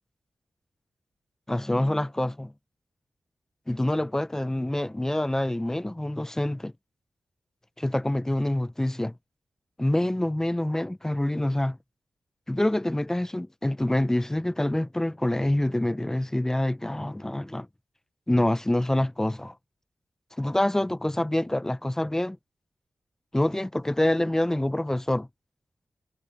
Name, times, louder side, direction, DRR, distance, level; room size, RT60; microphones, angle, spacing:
voice 1, 1.5-2.5 3.7-6.7 7.8-9.1 9.8-11.8 12.5-17.7 18.3-19.5 20.4-22.4 23.3-25.3, left 1 dB, 10° left, 0.5 m, -26 dB
wide cardioid pair, 165°, 5 cm